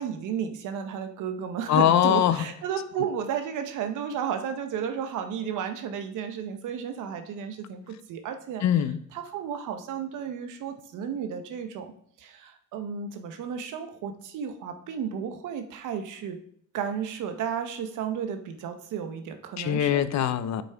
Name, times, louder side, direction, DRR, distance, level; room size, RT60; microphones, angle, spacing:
voice 1, 0.0-8.6 9.1-11.9 12.2-16.4 16.7-20.1, right 7 dB, 85° right, 8 dB, 1.0 m, -33 dB
voice 2, 1.7-2.5 8.6-9.0 19.6-20.6, left 10 dB, 65° left, 13 dB, 0.7 m, -22 dB
8.4 x 6.0 x 3.5 m, 0.65 s
cardioid pair, 90°, 30 cm